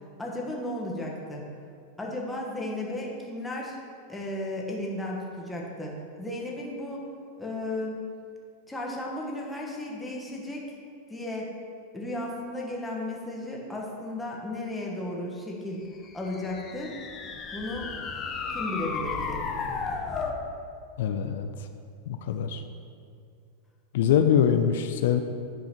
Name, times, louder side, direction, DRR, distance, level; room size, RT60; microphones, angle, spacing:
voice 1, 0.2-1.5 2.0-3.8 4.1-7.1 7.4-8.0 8.7-10.7 11.1-11.5 11.9-15.8 16.1-17.0 17.5-17.9 18.5-19.5, left 1 dB, 5° left, -3 dB, 1.2 m, -34 dB
sound 1, 16.0-20.4, left 5 dB, 25° left, 0.7 m, -34 dB
voice 2, 21.0-21.7 22.1-22.6 23.9-25.2, left 8 dB, 70° left, 7 dB, 0.5 m, -24 dB
8.8 x 3.9 x 5.8 m, 2.3 s
supercardioid pair, 150°, 0 cm